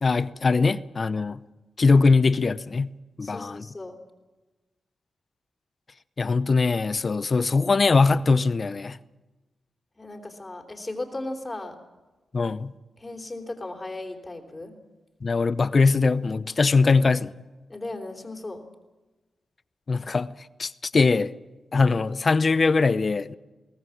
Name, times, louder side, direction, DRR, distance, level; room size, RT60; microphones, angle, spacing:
voice 1, 0.0-1.4 1.8-3.7 6.2-9.0 12.3-12.7 15.2-17.3 19.9-20.3 20.6-21.3 21.7-23.3, left 4 dB, 45° left, 0.7 m, -21 dB
voice 2, 3.2-4.0 10.0-11.8 13.0-14.7 17.7-18.6, left 2 dB, 25° left, 3.3 m, -36 dB
22.0 x 18.5 x 7.2 m
cardioid pair, 80°, 0 cm